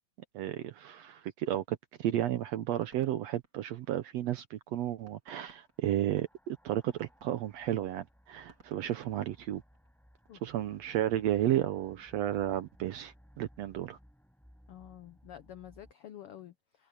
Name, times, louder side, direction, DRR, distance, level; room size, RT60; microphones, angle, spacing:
voice 1, 0.3-9.6 10.4-14.0, right 12 dB, 70° right, 1.6 m, -33 dB
sound 1, 2.6-4.3 4.7-4.8 5.0-10.0, right 3 dB, 30° right, 4.1 m, -61 dB
sound 2, 5.4-15.9, equal, ahead, 6.1 m, -62 dB
voice 2, 14.7-16.9, left 11 dB, 80° left, 1.3 m, -49 dB
omnidirectional pair, 3.7 m